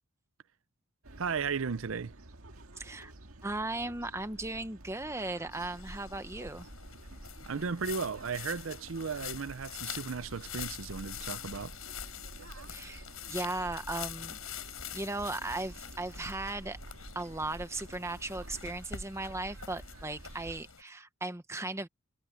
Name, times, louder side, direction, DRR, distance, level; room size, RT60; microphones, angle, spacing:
sound 1, 1.0-20.6, right 1 dB, 80° right, 1.8 m, -50 dB
voice 1, 1.2-2.1 7.5-11.8, right 5 dB, 65° right, 0.6 m, -35 dB
voice 2, 2.8-3.1 3.4-6.7 12.7-14.4 14.9-16.8 17.1-21.9, right 2 dB, 15° right, 0.9 m, -37 dB
sound 2, 5.5-20.8, left 9 dB, 80° left, 5.5 m, -45 dB
head